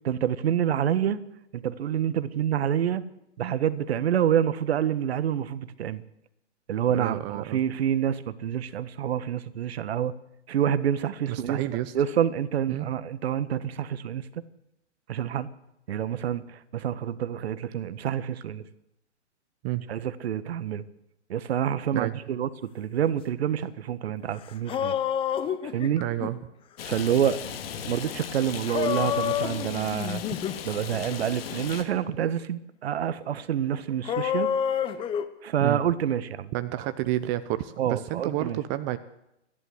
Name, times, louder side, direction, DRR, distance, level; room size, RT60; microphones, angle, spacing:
voice 1, 0.0-1.2 1.5-3.0 3.4-6.0 6.7-10.1 10.5-11.6 11.9-14.3 15.1-15.5 15.9-18.6 19.9-20.8 21.3-25.0 25.7-26.0 26.8-27.4 27.9-30.2 30.6-34.5 35.4-36.5 36.8-36.9 37.8-38.6, right 9 dB, 60° right, 15 dB, 1.6 m, -27 dB
voice 2, 6.9-7.6 11.3-11.9 12.7-12.9 19.6-19.8 21.9-22.1 26.0-26.4 35.6-35.8 36.5-39.0, right 15 dB, 25° right, 12 dB, 0.8 m, -30 dB
sound 1, 24.2-24.3 24.5-26.3 28.6-30.6 30.9-31.2 34.0-35.3, left 9 dB, 15° left, 1.0 m, -28 dB
Rain, 26.8-31.8, left 8 dB, 55° left, 2.9 m, -37 dB
29.5 x 11.5 x 8.0 m, 0.84 s
hypercardioid pair, 140°, 35 cm